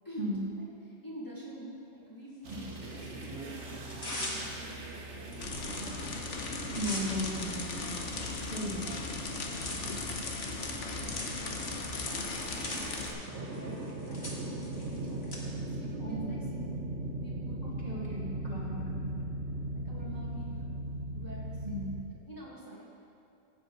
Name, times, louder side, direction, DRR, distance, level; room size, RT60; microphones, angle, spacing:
voice 1, 0.0-6.2 9.7-9.8 10.4-16.6 17.2-17.6 19.7-20.7 21.1-21.8 22.3-22.9, equal, 15° left, -6 dB, 1.8 m, -48 dB
Tearing, 2.4-3.3 3.7-4.8 5.3-5.4 5.7-6.1 6.3-15.4, left 1 dB, 60° left, 2.1 m, -44 dB
sound 1, 2.4-22.0, right 1 dB, 70° right, 1.4 m, -40 dB
sound 2, 5.4-13.1, left 3 dB, 80° left, 1.4 m, -37 dB
voice 2, 6.7-8.0 8.5-8.8 16.0-16.3 17.6-19.2 21.6-21.9, equal, 35° right, -7 dB, 2.7 m, -36 dB
15.5 x 8.0 x 4.7 m, 2.6 s
omnidirectional pair, 1.2 m